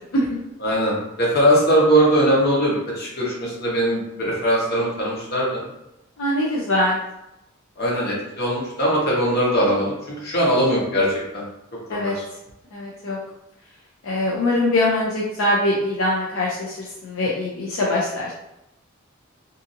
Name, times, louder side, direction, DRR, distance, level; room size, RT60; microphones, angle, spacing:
voice 1, 0.6-5.6 7.8-11.1 11.3-11.4 11.9-12.2, equal, 50° left, -5 dB, 1.0 m, -20 dB
voice 2, 6.2-7.0 11.9-12.1 12.7-13.2 14.0-18.3, left 1 dB, 75° left, -4 dB, 0.5 m, -22 dB
2.7 x 2.5 x 2.6 m, 0.88 s
head